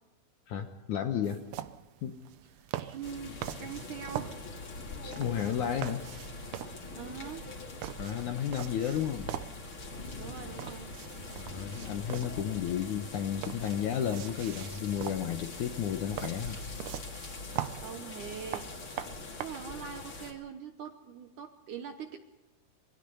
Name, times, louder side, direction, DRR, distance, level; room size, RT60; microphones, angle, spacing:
voice 1, 0.5-1.4 2.0-2.2 5.0-6.0 8.0-9.3 11.4-16.6, left 9 dB, 70° left, 6 dB, 2.0 m, -32 dB
sound 1, 1.2-19.5, right 12 dB, 90° right, 1.7 m, -43 dB
voice 2, 2.8-4.4 7.0-7.5 10.2-10.9 17.7-18.8 19.4-22.2, right 7 dB, 70° right, 7 dB, 2.0 m, -42 dB
sound 2, 3.0-20.3, left 3 dB, 35° left, 3.2 m, -43 dB
26.0 x 21.0 x 5.6 m, 1.2 s
omnidirectional pair, 4.7 m